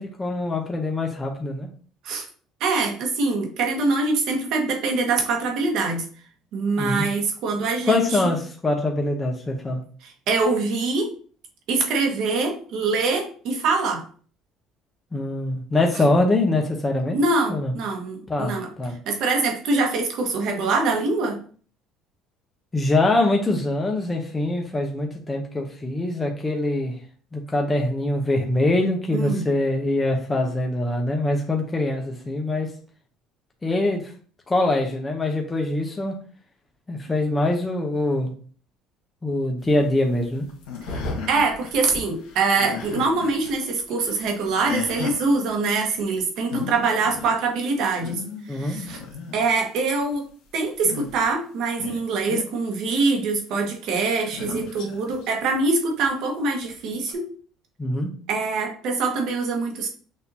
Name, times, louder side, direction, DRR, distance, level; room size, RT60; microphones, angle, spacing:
voice 1, 0.0-1.7 6.8-7.1 7.9-9.8 15.1-17.2 17.5-17.7 18.3-18.9 22.7-26.9 27.3-32.7 33.6-34.1 34.5-36.2 36.9-38.3 39.2-40.5 48.5-48.8 57.8-58.1, left 2 dB, 15° left, 1 dB, 0.7 m, -23 dB
voice 2, 2.6-6.0 6.5-8.3 10.0-11.1 11.7-14.0 17.1-18.7 19.0-21.4 29.1-29.5 40.9-41.0 41.3-49.0 49.3-50.3 50.5-57.3 58.3-59.9, right 3 dB, 65° right, 2 dB, 1.3 m, -24 dB
sound 1, 39.6-43.5 43.8-45.2 46.2-46.3 46.5-46.8 47.1-47.4 47.8-49.6 50.7-51.3 51.8-52.5 54.2-55.3 56.0-56.1 57.1-57.2, left 5 dB, 85° left, 1.4 m, -34 dB
6.3 x 2.7 x 2.7 m, 0.43 s
cardioid pair, 120°, 0 cm